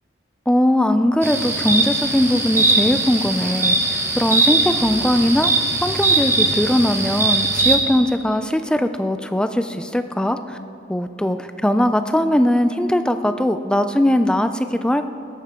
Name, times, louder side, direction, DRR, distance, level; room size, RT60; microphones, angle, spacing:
voice 1, 0.5-5.5 5.8-10.6 10.9-15.1, left 1 dB, 5° left, 9 dB, 0.4 m, -20 dB
sound 1, 1.2-7.8, right 3 dB, 15° right, 1.2 m, -20 dB
20.5 x 12.0 x 3.7 m, 2.5 s
head